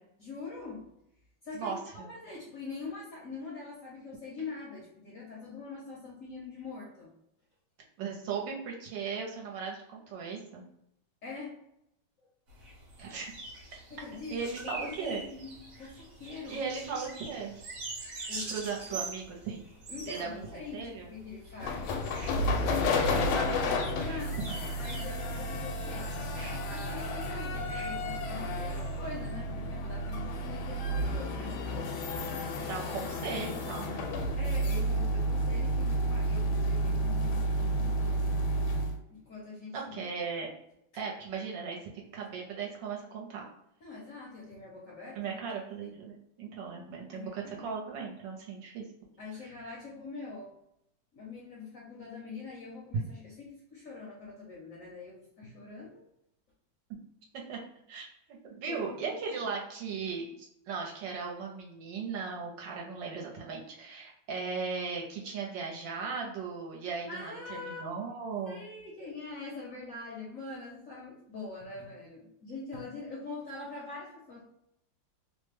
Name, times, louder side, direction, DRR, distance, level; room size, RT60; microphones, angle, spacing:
voice 1, 0.2-0.9 1.4-1.7 2.1-7.1 11.2-11.6 13.9-16.6 18.3-18.5 18.9-19.0 19.9-24.4 24.8-26.1 26.7-31.9 34.3-38.2 39.1-40.0 43.8-45.3 45.8-45.9 47.1-47.7 49.2-50.6 51.1-56.0 58.7-59.1 67.1-67.8 68.5-74.4, left 3 dB, 60° left, -4 dB, 0.9 m, -44 dB
voice 2, 1.5-2.1 8.0-10.6 13.0-13.3 14.3-15.2 16.5-17.5 18.5-19.7 20.1-21.1 32.7-34.0 39.7-40.5 40.9-43.5 45.2-48.8 57.3-57.6 57.9-68.6, right 5 dB, 75° right, -1 dB, 1.4 m, -37 dB
sound 1, 12.5-29.3, right 2 dB, 50° right, 1.2 m, -45 dB
sound 2, 21.6-39.0, equal, 90° left, 1.4 m, -31 dB
3.3 x 2.1 x 3.2 m, 0.78 s
omnidirectional pair, 2.1 m